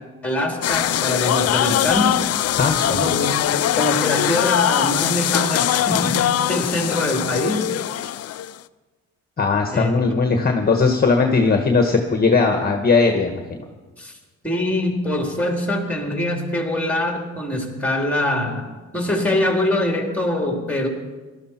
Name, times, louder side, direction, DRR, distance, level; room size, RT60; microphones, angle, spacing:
voice 1, 0.2-2.2 2.9-7.7 9.7-9.9 14.0-14.1 14.4-18.6 18.9-20.9, left 1 dB, 5° left, 1 dB, 3.4 m, -23 dB
sound 1, 0.6-8.5, left 12 dB, 55° left, 0.5 m, -21 dB
voice 2, 2.6-3.0 9.4-13.4, left 4 dB, 30° left, 4 dB, 1.4 m, -18 dB
18.5 x 12.5 x 4.4 m, 1.3 s
cardioid pair, 90°, 30 cm